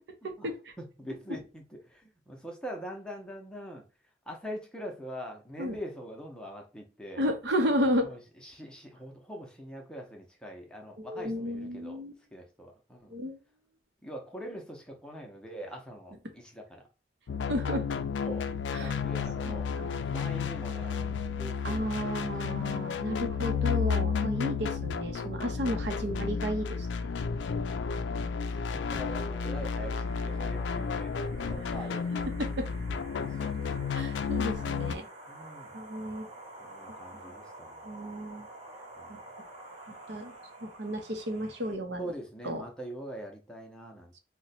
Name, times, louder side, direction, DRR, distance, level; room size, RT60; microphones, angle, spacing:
voice 1, 0.8-3.8 4.3-7.2 8.0-12.0 12.3-13.1 14.0-16.9 18.2-18.5 18.8-19.7 20.1-22.3 24.4-24.7 25.7-25.8 27.5-27.7 28.1-32.2 32.8-33.6 34.5-34.9 35.3-35.7 36.6-38.3 39.0-39.2 42.0-44.1, equal, 5° left, 0.6 m, -43 dB
voice 2, 7.2-8.1 11.0-12.1 13.1-13.4 17.5-17.8 18.7-18.9 19.4-20.0 21.6-26.9 32.4-32.7 33.9-35.0 35.7-36.3 37.8-38.5 39.1-39.2 39.9-40.3 40.6-42.1 42.4-42.6, equal, 75° right, 0.7 m, -32 dB
sound 1, 17.3-35.0, left 5 dB, 75° left, 0.3 m, -32 dB
sound 2, 29.5-41.8, right 2 dB, 35° right, 1.1 m, -49 dB
2.9 x 2.2 x 4.0 m
head